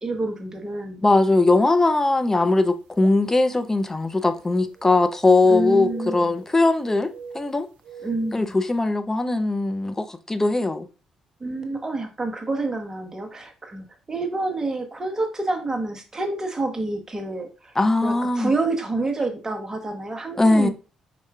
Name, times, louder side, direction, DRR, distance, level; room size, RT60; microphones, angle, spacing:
voice 1, 0.0-1.0 5.4-6.4 8.0-8.5 11.4-17.7 18.0-20.7, right 2 dB, 25° right, 1.0 m, -28 dB
voice 2, 1.0-7.1 7.3-7.7 8.3-10.9 17.8-18.5 20.4-20.7, left 2 dB, 20° left, 0.6 m, -20 dB
sound 1, 1.4-1.6 2.3-2.4 4.3-5.6 5.8-6.7 7.1-8.5, right 5 dB, 65° right, 0.5 m, -43 dB
4.6 x 4.2 x 2.3 m
figure-of-eight pair, 45°, 2 cm